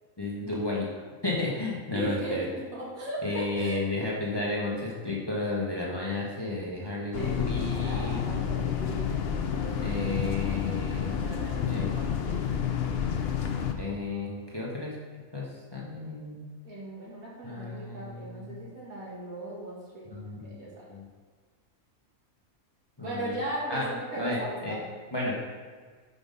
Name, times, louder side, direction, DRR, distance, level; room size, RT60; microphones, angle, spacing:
voice 1, 0.2-2.5 3.2-7.1 7.5-8.4 9.8-11.2 11.7-11.9 13.8-14.9 15.3-16.4 17.4-18.5 20.1-20.6 20.9-21.0 23.0-23.4 23.7-23.9 24.2-24.8 25.1-25.3, left 2 dB, 20° left, -5 dB, 1.1 m, -32 dB
voice 2, 1.9-3.9 6.7-12.4 16.6-20.1 20.5-20.9 23.0-24.9, right 1 dB, 80° right, -6 dB, 2.5 m, -38 dB
sound 1, 7.1-13.7, left 7 dB, 60° left, 0.7 m, -30 dB
5.7 x 5.3 x 5.3 m, 1.5 s
omnidirectional pair, 1.5 m